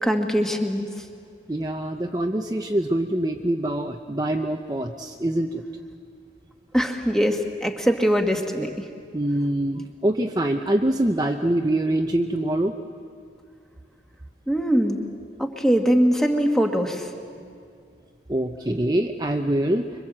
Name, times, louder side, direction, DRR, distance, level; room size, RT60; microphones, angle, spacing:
voice 1, 0.0-0.8 6.7-8.9 14.5-15.0 15.4-17.1, equal, 5° left, 3 dB, 1.6 m, -22 dB
voice 2, 1.5-5.6 9.1-12.8 18.3-19.9, right 1 dB, 20° right, 3 dB, 0.7 m, -24 dB
25.5 x 24.5 x 7.6 m, 2.3 s
head